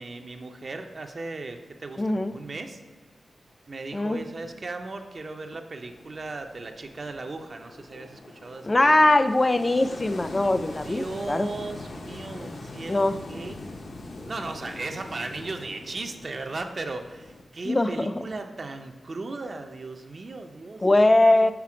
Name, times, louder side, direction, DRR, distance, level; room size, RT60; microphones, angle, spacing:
voice 1, 0.0-2.8 3.7-9.1 10.8-13.6 14.2-21.0, right 3 dB, 45° right, 5 dB, 0.4 m, -37 dB
voice 2, 2.0-2.4 3.9-4.2 8.6-11.5 12.9-13.2 17.7-18.1 20.8-21.5, left 2 dB, 25° left, 11 dB, 0.3 m, -21 dB
sound 1, 5.9-17.4, left 2 dB, 65° left, 0.7 m, -42 dB
5.8 x 4.1 x 4.8 m, 1.3 s
wide cardioid pair, 105°, 0 cm